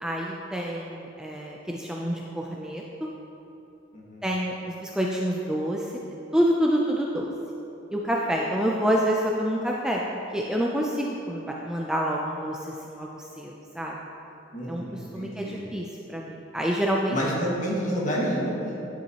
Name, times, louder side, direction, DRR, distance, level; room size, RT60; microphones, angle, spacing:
voice 1, 0.0-3.1 4.2-5.9 6.3-7.3 7.9-10.0 10.3-12.6 12.8-13.1 13.4-14.0 14.7-14.8 15.1-17.2, equal, 5° right, -2 dB, 0.4 m, -27 dB
voice 2, 3.9-4.2 14.5-15.6 17.1-18.9, equal, 40° left, -4 dB, 1.7 m, -29 dB
10.0 x 8.2 x 2.9 m, 2.9 s
head